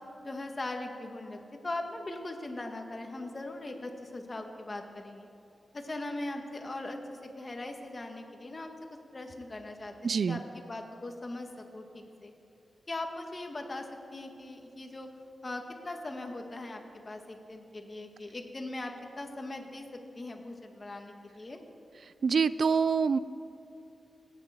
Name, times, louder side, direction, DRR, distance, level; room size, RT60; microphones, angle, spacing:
voice 1, 0.2-5.3 5.7-8.7 9.1-12.3 12.9-15.1 15.4-21.6, left 2 dB, 30° left, 4 dB, 1.7 m, -40 dB
voice 2, 10.0-10.4 22.2-23.2, right 5 dB, 65° right, 16 dB, 0.4 m, -25 dB
17.5 x 9.1 x 9.1 m, 2.9 s
wide cardioid pair, 120°, 0 cm